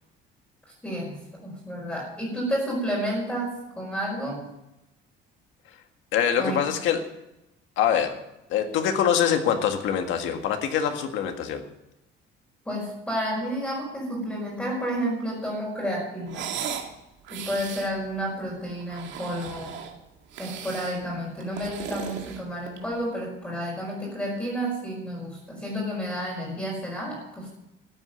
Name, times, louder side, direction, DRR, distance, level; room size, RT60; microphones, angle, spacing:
voice 1, 0.8-1.2 1.4-4.5 6.4-6.5 12.6-16.5 17.3-19.7 20.4-27.5, equal, 5° left, -6 dB, 5.0 m, -31 dB
voice 2, 6.1-7.0 7.8-8.2 8.5-11.6, left 8 dB, 70° left, 5 dB, 1.8 m, -24 dB
sound 1, 16.3-16.9 17.2-17.9 18.8-19.9 20.3-21.0 21.4-22.9, right 8 dB, 65° right, 2.1 m, -36 dB
14.0 x 8.4 x 9.1 m, 0.90 s
cardioid pair, 180°, 20 cm